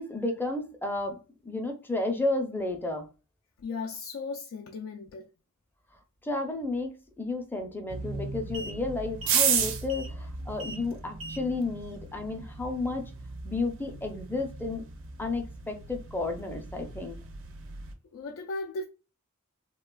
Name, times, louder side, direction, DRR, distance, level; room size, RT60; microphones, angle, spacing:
voice 1, 0.0-3.1 6.2-13.1 13.4-14.8 15.2-17.2, left 2 dB, 10° left, 0.5 m, -32 dB
voice 2, 3.6-5.3 18.1-18.8, left 3 dB, 90° left, 0.4 m, -36 dB
sound 1, 7.9-17.9, right 6 dB, 65° right, 0.5 m, -34 dB
3.1 x 2.2 x 2.2 m
head